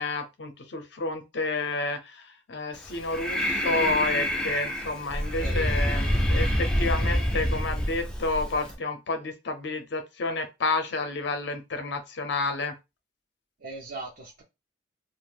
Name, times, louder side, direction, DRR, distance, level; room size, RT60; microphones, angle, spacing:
voice 1, 0.0-12.7, left 3 dB, 65° left, 0.5 m, -30 dB
Breathing, 2.8-8.7, equal, 5° left, 0.4 m, -27 dB
voice 2, 5.4-6.3 13.6-14.4, right 2 dB, 50° right, 0.5 m, -40 dB
2.5 x 2.0 x 3.3 m
head